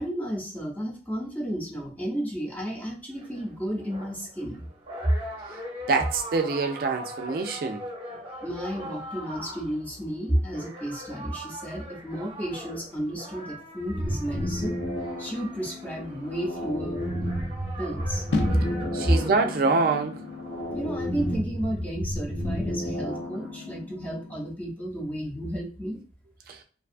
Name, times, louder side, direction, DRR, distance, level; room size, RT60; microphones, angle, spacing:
voice 1, 0.0-4.6 8.4-14.8 15.2-17.0 17.8-18.6 20.7-26.0, equal, 10° left, 0.5 m, -32 dB
sound 1, 3.2-21.4, equal, 30° right, 0.7 m, -42 dB
voice 2, 5.9-7.8 18.9-20.2 26.5-26.6, right 4 dB, 55° right, 0.3 m, -25 dB
sound 2, 13.9-23.8, equal, 65° left, 0.9 m, -32 dB
sound 3, 18.3-24.5, left 3 dB, 80° left, 0.4 m, -36 dB
2.5 x 2.3 x 2.4 m
head